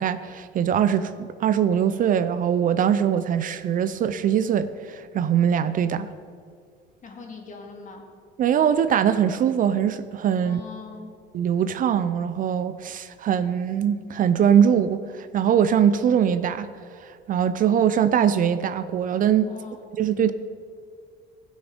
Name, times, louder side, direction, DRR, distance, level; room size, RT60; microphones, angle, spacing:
voice 1, 0.0-6.1 8.4-10.6 11.3-16.7 17.3-19.5 20.0-20.3, right 8 dB, 45° right, 13 dB, 0.5 m, -22 dB
voice 2, 7.0-8.1 10.4-11.1 19.5-19.9, left 4 dB, 40° left, 2 dB, 2.0 m, -41 dB
15.5 x 6.3 x 5.1 m, 2.2 s
cardioid pair, 105°, 19 cm